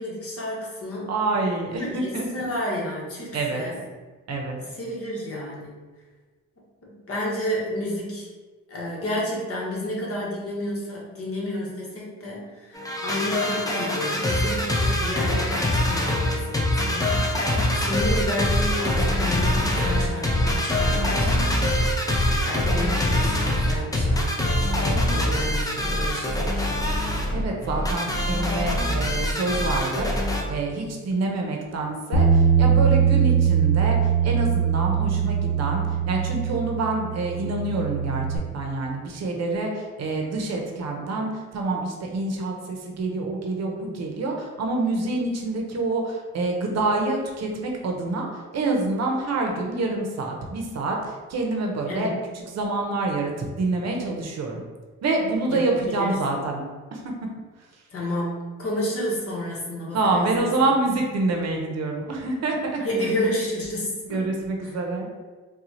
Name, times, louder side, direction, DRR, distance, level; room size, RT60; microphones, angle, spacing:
voice 1, 0.0-1.1 1.7-3.8 4.8-5.8 6.9-8.3 8.7-17.4 17.7-21.7 22.4-26.7 51.9-52.2 55.5-56.2 57.9-60.5 62.8-64.2, left 1 dB, 50° left, -4 dB, 1.2 m, -31 dB
voice 2, 1.1-2.3 3.3-3.6 4.3-4.6 27.3-48.3 48.5-54.6 55.0-56.6 56.9-57.0 59.9-62.8 64.1-65.1, right 2 dB, 60° right, 1 dB, 0.7 m, -27 dB
sound 1, 12.7-30.4, left 1 dB, 10° left, 0.5 m, -24 dB
Bass guitar, 32.1-38.4, right 7 dB, 75° left, 0.8 m, -21 dB
4.3 x 2.3 x 2.7 m, 1.4 s
cardioid pair, 90°, 30 cm